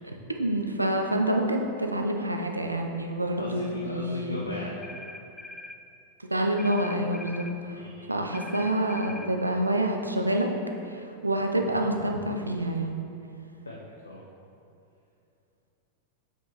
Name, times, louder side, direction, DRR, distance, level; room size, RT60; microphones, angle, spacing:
voice 1, 0.0-4.4 6.3-7.8 8.1-10.5 10.8-13.0, right 1 dB, 85° right, 3 dB, 0.5 m, -27 dB
voice 2, 3.4-4.8 7.7-8.1 13.7-14.2, left 1 dB, 75° left, -3 dB, 0.6 m, -37 dB
sound 1, 4.8-5.8 6.6-7.6 8.3-9.3, left 1 dB, ahead, 0.3 m, -43 dB
7.4 x 5.3 x 3.0 m, 2.6 s
figure-of-eight pair, 90°, 0 cm